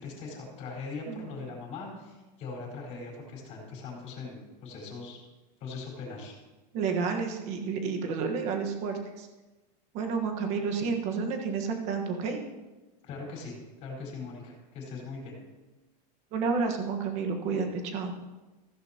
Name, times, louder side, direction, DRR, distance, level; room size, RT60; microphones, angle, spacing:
voice 1, 0.0-5.2 5.6-6.3 13.0-13.5 13.8-15.3, left 4 dB, 30° left, -2 dB, 4.7 m, -40 dB
voice 2, 6.7-9.3 9.9-12.4 16.3-18.1, right 5 dB, 35° right, 4 dB, 1.4 m, -30 dB
15.5 x 15.0 x 3.0 m, 1.1 s
supercardioid pair, 180°, 21 cm